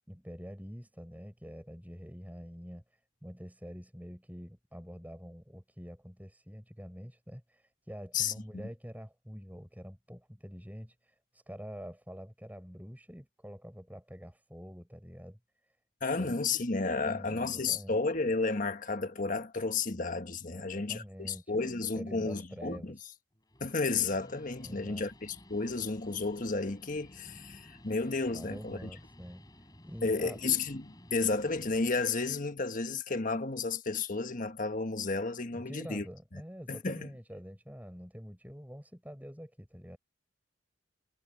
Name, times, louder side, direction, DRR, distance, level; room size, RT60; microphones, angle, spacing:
voice 1, 0.0-15.4 16.1-16.4 16.9-18.0 20.5-21.6 21.9-23.0 24.6-25.1 28.2-30.5 35.5-40.0, equal, 10° right, 6.9 m, -46 dB
voice 2, 8.1-8.6 16.0-23.0 23.6-28.9 30.0-36.0 36.7-37.1, left 4 dB, 40° left, 1.4 m, -32 dB
Guitar, 23.3-32.1, left 1 dB, 20° left, 3.9 m, -54 dB
head